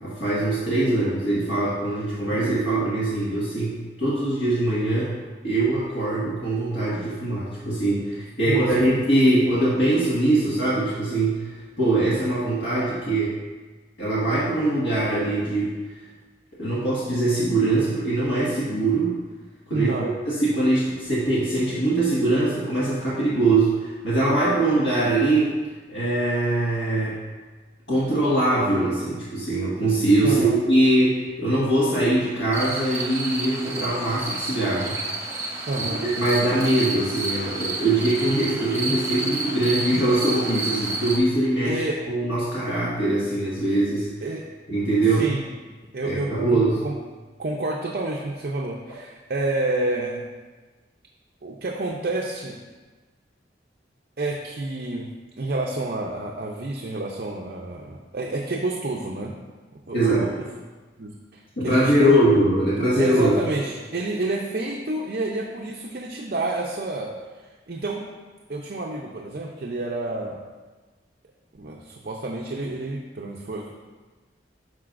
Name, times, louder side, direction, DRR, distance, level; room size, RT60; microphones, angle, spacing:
voice 1, 0.0-5.1 5.4-11.5 11.8-13.3 14.0-15.7 16.6-19.2 19.7-19.9 20.3-25.6 25.9-27.2 27.9-35.0 36.0-44.3 44.7-45.3 46.0-46.8 59.9-60.3 61.6-63.3, right 1 dB, 85° left, -8 dB, 1.6 m, -22 dB
voice 2, 8.5-8.9 19.7-20.1 30.2-30.6 35.7-36.0 41.6-42.0 44.2-44.5 45.1-45.4 45.9-47.0 47.4-50.2 51.4-52.6 54.2-55.1 55.4-59.3 59.9-60.3 61.0-62.2 63.0-67.1 67.7-68.1 68.5-70.4 71.5-73.7, right 2 dB, 55° right, -1 dB, 0.6 m, -29 dB
sound 1, 32.5-41.2, right 2 dB, 15° right, 0.9 m, -30 dB
10.5 x 6.2 x 2.5 m, 1.3 s
head